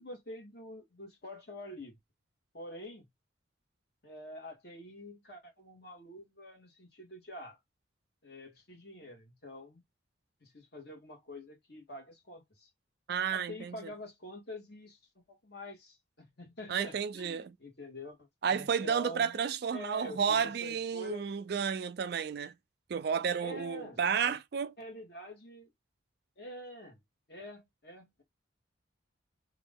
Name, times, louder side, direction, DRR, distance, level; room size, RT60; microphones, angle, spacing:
voice 1, 0.0-2.0 2.5-3.1 4.0-7.6 8.2-9.8 10.4-12.7 13.3-15.0 15.3-18.2 18.5-19.4 19.7-21.3 23.4-24.4 24.8-25.7 26.4-27.0 27.3-28.2, left 1 dB, 55° left, 1.5 m, -47 dB
voice 2, 13.1-13.8 16.7-17.5 18.4-22.5 22.9-24.7, right 6 dB, 55° right, 0.3 m, -32 dB
3.0 x 2.5 x 3.4 m
head